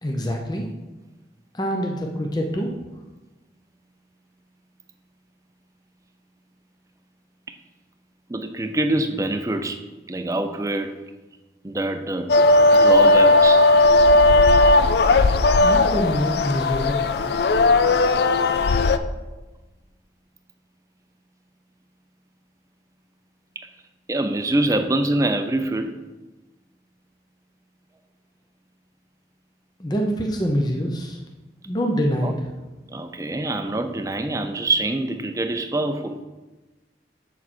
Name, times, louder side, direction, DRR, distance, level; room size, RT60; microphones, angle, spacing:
voice 1, 0.0-0.7 1.5-2.7 15.6-17.1 29.8-31.2 31.7-32.3, equal, 20° left, 1 dB, 0.7 m, -25 dB
voice 2, 8.3-10.9 11.6-12.4 12.7-13.6 23.6-23.7 24.1-26.0 32.2-32.3 32.9-36.2, right 2 dB, 15° right, 7 dB, 0.5 m, -25 dB
sound 1, 12.3-19.0, left 2 dB, 60° left, 0.4 m, -16 dB
7.5 x 7.1 x 4.3 m, 1.1 s
head